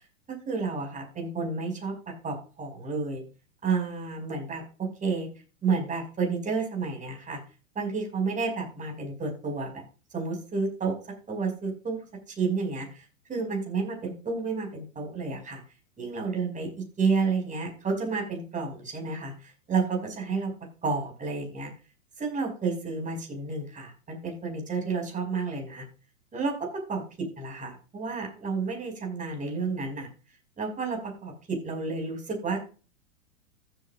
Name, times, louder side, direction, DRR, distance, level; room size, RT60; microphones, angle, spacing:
voice 1, 0.3-3.2 3.6-5.3 5.6-7.4 7.8-9.8 10.1-10.9 11.3-12.0 12.3-15.6 16.0-20.5 20.8-21.7 22.2-25.8 26.3-30.1 30.6-32.7, right 4 dB, 20° right, 2 dB, 5.4 m, -31 dB
15.0 x 8.3 x 2.5 m, 0.35 s
hypercardioid pair, 110°, 40 cm